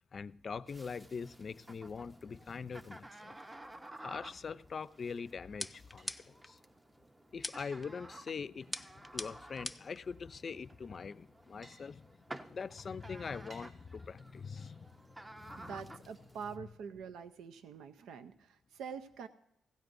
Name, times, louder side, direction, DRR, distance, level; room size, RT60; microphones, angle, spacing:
voice 1, 0.1-3.4 4.0-6.6 7.3-16.0 16.6-16.7, left 5 dB, 50° left, 0.5 m, -43 dB
sound 1, 0.7-16.6, right 1 dB, 20° right, 0.8 m, -53 dB
sound 2, 5.4-17.0, right 1 dB, 55° right, 4.9 m, -67 dB
sound 3, 5.6-6.5 7.4-7.9 8.7-10.0, left 1 dB, 10° left, 0.6 m, -42 dB
voice 2, 15.6-19.3, right 6 dB, 85° right, 0.6 m, -45 dB
19.5 x 16.0 x 2.6 m
supercardioid pair, 60°, 0 cm